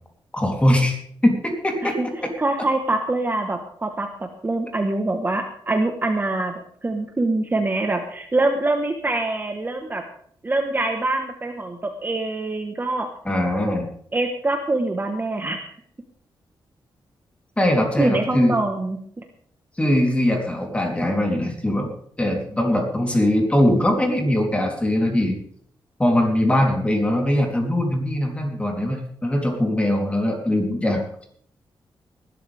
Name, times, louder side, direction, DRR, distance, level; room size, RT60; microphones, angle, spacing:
voice 1, 0.3-2.0 13.2-13.8 17.6-18.5 19.8-21.9 22.2-25.4 26.0-31.0, left 1 dB, 15° left, 1 dB, 3.4 m, -21 dB
voice 2, 2.4-6.5 6.8-10.0 10.4-13.1 14.1-15.7 18.0-19.2, right 2 dB, 25° right, 4 dB, 1.4 m, -24 dB
19.5 x 12.0 x 3.5 m, 0.62 s
wide cardioid pair, 125°, 9 cm